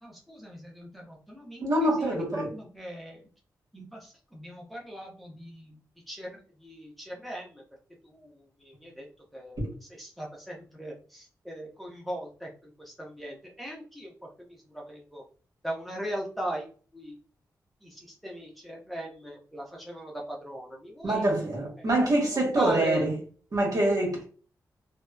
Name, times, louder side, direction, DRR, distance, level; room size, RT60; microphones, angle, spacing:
voice 1, 0.0-3.2 3.7-5.8 6.1-7.6 8.0-9.1 9.3-15.2 15.6-17.2 17.8-21.3 21.8-21.9 22.3-23.1, right 1 dB, ahead, 0.8 m, -39 dB
voice 2, 1.6-2.5 9.6-9.7 21.0-23.1 23.5-24.2, right 1 dB, 60° right, 1.2 m, -25 dB
2.8 x 2.1 x 2.3 m
cardioid pair, 65°, 7 cm